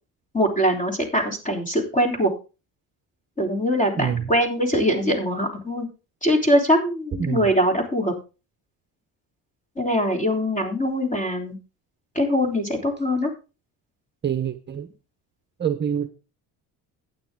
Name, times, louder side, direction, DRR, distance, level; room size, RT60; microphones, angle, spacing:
voice 1, 0.3-2.3 3.4-5.9 6.2-8.1 9.8-11.6 12.2-13.3, equal, 20° left, 3 dB, 3.5 m, -22 dB
voice 2, 4.0-4.3 7.2-7.5 14.2-14.9 15.6-16.1, right 8 dB, 30° right, 9 dB, 0.9 m, -26 dB
12.0 x 9.4 x 3.7 m, 0.31 s
cardioid pair, 125°, 37 cm